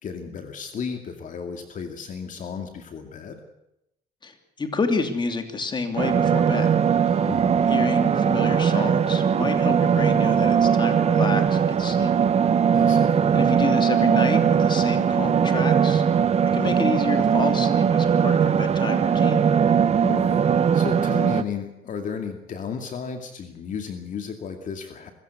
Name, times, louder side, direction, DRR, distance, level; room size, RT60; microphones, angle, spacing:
voice 1, 0.0-3.4 7.2-7.7 12.7-13.2 20.0-20.4 20.7-25.1, left 6 dB, 50° left, 5 dB, 2.4 m, -34 dB
voice 2, 4.2-6.7 7.1-7.3 7.7-12.1 13.3-16.0 16.5-19.4, left 4 dB, 25° left, 6 dB, 3.0 m, -29 dB
sound 1, 6.0-21.4, right 7 dB, 40° right, 1.0 m, -20 dB
25.0 x 15.0 x 8.2 m, 0.84 s
cardioid pair, 110°, 17 cm